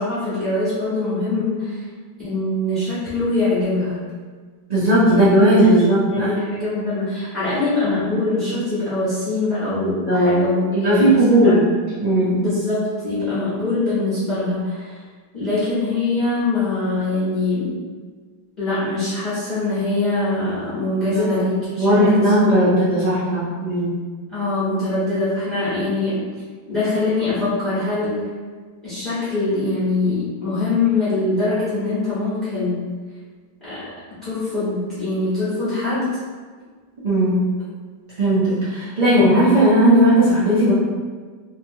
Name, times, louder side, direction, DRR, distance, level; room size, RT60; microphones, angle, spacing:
voice 1, 0.0-1.9 2.2-4.0 5.0-5.2 5.6-5.7 6.0-11.6 12.3-15.0 15.3-17.7 18.6-22.2 22.5-22.6 24.3-26.2 26.7-28.3 28.8-32.9 33.6-33.8 34.2-36.1, left 2 dB, 35° left, -14 dB, 1.1 m, -23 dB
voice 2, 4.7-6.3 10.1-10.5 10.7-11.6 12.0-12.4 21.1-21.4 21.8-23.9 37.0-37.4 38.2-40.7, right 1 dB, 85° right, -10 dB, 0.3 m, -16 dB
2.9 x 2.7 x 2.6 m, 1.5 s
omnidirectional pair, 1.8 m